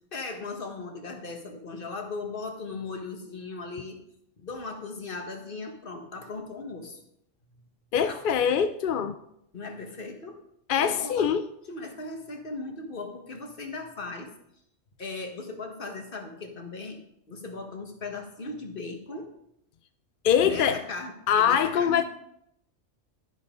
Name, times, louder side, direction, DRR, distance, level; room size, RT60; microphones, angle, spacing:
voice 1, 0.1-4.0 4.4-7.0 7.5-7.7 8.0-8.5 9.5-10.4 10.8-11.3 11.7-14.3 15.0-17.0 17.3-19.3 20.4-22.0, left 3 dB, 45° left, 4 dB, 1.6 m, -38 dB
voice 2, 7.9-9.1 10.7-11.4 20.2-20.8 21.3-22.0, left 8 dB, 60° left, 10 dB, 0.5 m, -23 dB
11.5 x 11.0 x 3.8 m, 0.77 s
omnidirectional pair, 1.3 m